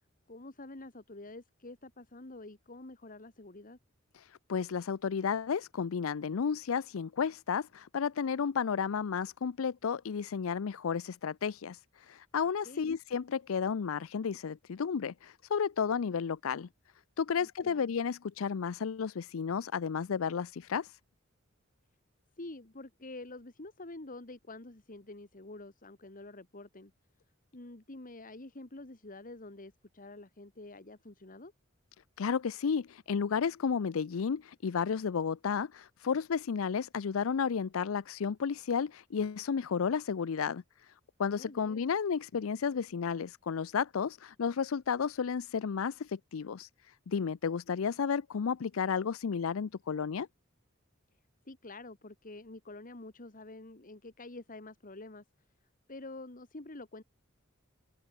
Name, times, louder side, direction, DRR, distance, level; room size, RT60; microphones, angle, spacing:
voice 1, 0.3-3.8 12.6-12.9 17.3-17.9 22.4-26.9 27.5-31.5 41.3-41.9 51.5-55.2 55.9-57.0, left 2 dB, 40° left, 1.9 m, -47 dB
voice 2, 4.1-16.7 17.2-21.0 32.2-40.9 41.2-50.3, left 6 dB, 85° left, 0.5 m, -32 dB
head